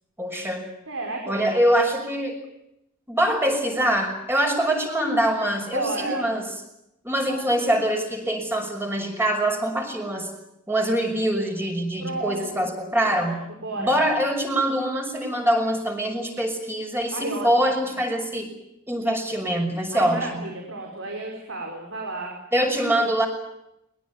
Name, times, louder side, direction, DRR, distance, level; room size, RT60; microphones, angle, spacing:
voice 1, 0.2-0.7 1.3-2.4 3.1-6.5 7.0-10.3 10.7-13.4 13.8-18.5 18.9-20.5 22.5-23.3, right 1 dB, 10° right, 3 dB, 6.0 m, -24 dB
voice 2, 0.9-1.6 5.7-6.3 12.0-12.7 13.0-14.0 17.1-17.5 19.9-22.4, right 2 dB, 70° right, 1 dB, 5.3 m, -32 dB
22.5 x 21.5 x 9.7 m, 0.83 s
head